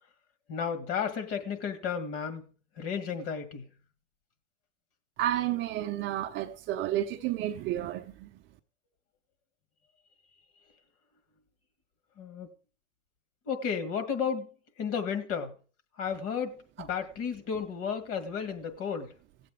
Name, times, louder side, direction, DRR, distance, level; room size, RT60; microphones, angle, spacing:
voice 1, 0.5-2.5 2.8-3.7 12.2-12.5 13.5-14.5 14.8-15.5 16.0-19.1, left 6 dB, 35° left, 1.8 m, -33 dB
voice 2, 5.2-8.3, right 13 dB, 30° right, 0.7 m, -31 dB
17.5 x 7.8 x 3.8 m
hypercardioid pair, 110°, 37 cm